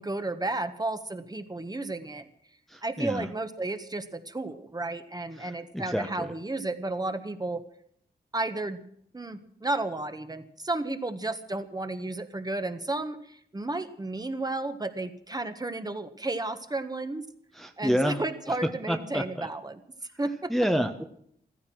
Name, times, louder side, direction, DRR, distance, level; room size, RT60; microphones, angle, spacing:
voice 1, 0.0-2.3 2.8-7.6 8.3-8.8 9.1-17.2 17.8-19.8 20.2-20.5, right 2 dB, 25° right, 9 dB, 1.5 m, -32 dB
voice 2, 2.7-3.3 5.4-6.3 17.5-18.2 18.5-18.6 18.9-19.5 20.5-21.0, equal, ahead, 6 dB, 1.1 m, -29 dB
15.0 x 14.5 x 6.2 m, 0.66 s
wide cardioid pair, 105°, 17 cm